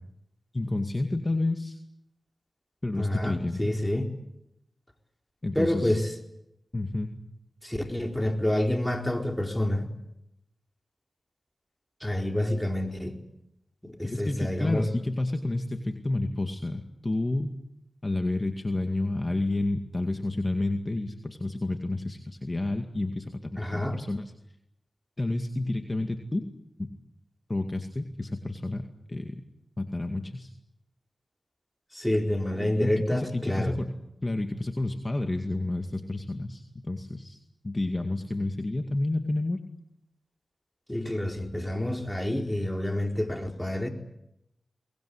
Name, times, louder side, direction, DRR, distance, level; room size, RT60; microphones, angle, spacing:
voice 1, 0.5-1.8 2.8-3.7 5.4-6.0 6.7-7.1 14.0-17.5 18.0-24.2 25.2-26.4 26.8-26.9 27.5-29.4 29.8-30.5 32.5-33.9 34.2-37.4 37.6-39.6, left 2 dB, 35° left, 5 dB, 2.2 m, -30 dB
voice 2, 3.0-4.1 5.5-6.1 7.6-9.9 12.0-13.2 13.8-14.9 23.6-24.0 31.9-33.8 40.9-43.9, left 1 dB, 10° left, 3 dB, 4.4 m, -28 dB
23.5 x 20.5 x 9.8 m, 0.84 s
cardioid pair, 45°, 0 cm